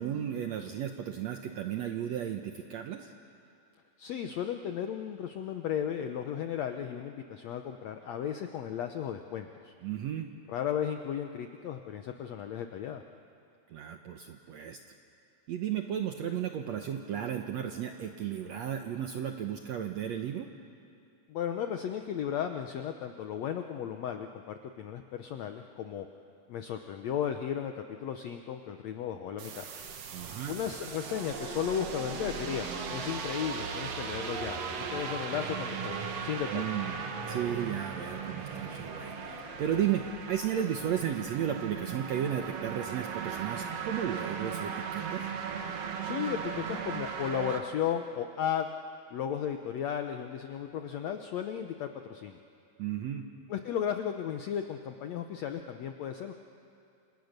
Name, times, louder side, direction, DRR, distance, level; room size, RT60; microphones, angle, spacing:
voice 1, 0.0-3.1 9.8-10.3 13.7-14.8 15.5-20.5 30.1-30.5 36.5-45.2 52.8-53.2, right 9 dB, 70° right, 5 dB, 1.6 m, -34 dB
voice 2, 4.0-9.7 10.5-13.0 21.3-26.1 26.5-29.7 30.5-36.7 46.0-48.7 49.1-52.4 53.5-56.3, left 9 dB, 80° left, 6 dB, 1.5 m, -35 dB
sound 1, 29.4-47.6, right 6 dB, 55° right, 2.2 m, -38 dB
sound 2, 30.6-40.2, right 1 dB, 90° right, 6.4 m, -47 dB
29.5 x 27.0 x 6.7 m, 2.5 s
omnidirectional pair, 4.2 m